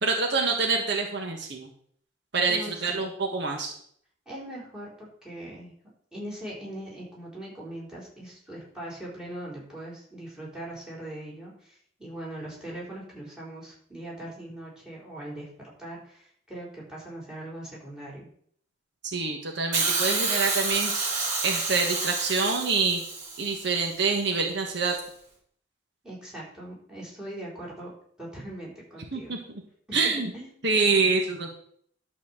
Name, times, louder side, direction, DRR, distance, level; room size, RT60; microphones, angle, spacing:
voice 1, 0.0-1.7 2.3-3.7 19.0-23.0 23.4-24.9 29.1-29.4 29.9-30.3 30.6-31.5, right 4 dB, 65° right, 2 dB, 1.4 m, -26 dB
voice 2, 2.5-3.1 4.3-5.7 6.1-15.5 15.8-18.3 26.0-27.9 28.2-29.4 29.9-30.5, right 1 dB, 5° right, -4 dB, 4.3 m, -40 dB
Hiss, 19.7-23.9 24.9-25.0, right 3 dB, 40° right, 3.3 m, -29 dB
11.5 x 4.4 x 7.3 m, 0.62 s
head